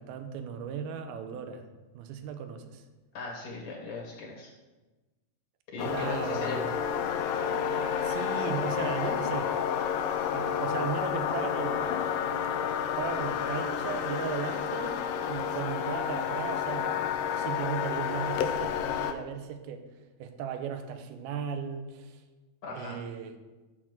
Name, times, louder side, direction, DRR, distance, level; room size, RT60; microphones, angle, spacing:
voice 1, 0.0-1.7 1.9-2.8 5.8-6.8 8.0-9.5 10.3-12.0 12.8-15.0 15.3-19.8 20.2-22.2 22.8-23.4, right 7 dB, 80° right, 7 dB, 2.7 m, -36 dB
voice 2, 3.1-4.5 5.7-6.7 22.6-23.0, left 3 dB, 55° left, -3 dB, 2.7 m, -38 dB
sound 1, 5.8-19.1, left 8 dB, 80° left, 2.3 m, -30 dB
12.0 x 4.4 x 7.4 m, 1.2 s
omnidirectional pair, 4.4 m